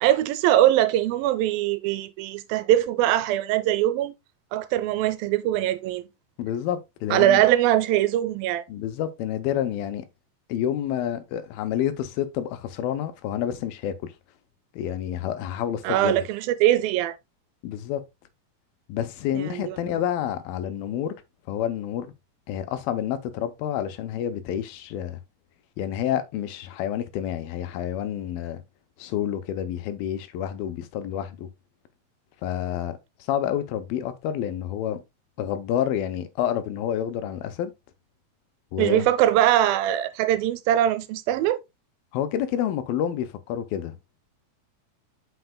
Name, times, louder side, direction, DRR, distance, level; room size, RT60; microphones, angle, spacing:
voice 1, 0.0-4.1 4.5-6.0 7.1-8.6 15.8-17.2 19.3-19.7 38.8-41.6, right 13 dB, 85° right, 2.4 m, -22 dB
voice 2, 6.4-7.4 8.7-10.1 10.5-14.1 14.7-16.2 17.6-18.0 18.9-21.2 21.5-22.1 22.5-25.2 25.8-28.6 29.0-31.5 32.4-33.0 33.3-35.0 35.4-37.7 38.7-39.1 42.1-44.0, left 10 dB, 85° left, 2.6 m, -28 dB
7.9 x 5.9 x 2.2 m
omnidirectional pair, 4.1 m